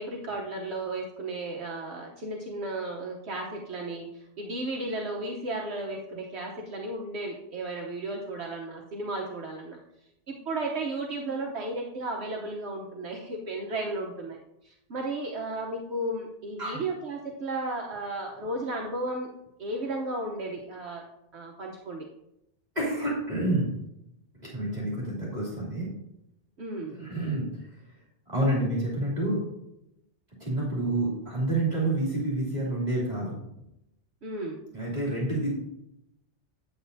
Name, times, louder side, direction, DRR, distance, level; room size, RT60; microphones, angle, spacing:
voice 1, 0.0-9.8 10.3-14.4 14.6-19.3 19.6-21.0 21.3-22.1 26.6-27.0 34.2-34.6, right 2 dB, 65° right, 0 dB, 1.2 m, -34 dB
voice 2, 22.7-23.7 24.4-25.9 26.9-27.7 28.3-29.4 30.4-33.3 34.7-35.5, right 1 dB, 35° right, -6 dB, 2.9 m, -28 dB
9.1 x 8.4 x 2.7 m, 0.84 s
omnidirectional pair, 1.2 m